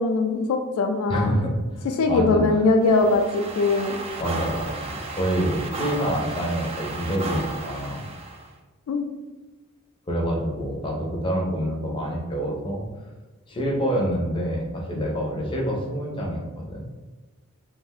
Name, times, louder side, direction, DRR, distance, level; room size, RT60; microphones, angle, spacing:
voice 1, 0.0-1.4 2.0-4.0 8.9-9.1, left 3 dB, 80° left, 9 dB, 0.3 m, -21 dB
voice 2, 1.1-2.4 4.2-8.0 10.1-12.8 13.5-16.9, equal, 25° left, -2 dB, 0.5 m, -27 dB
sound 1, 2.8-8.5, right 3 dB, 30° right, 0.3 m, -34 dB
2.4 x 2.1 x 3.5 m, 1.2 s
head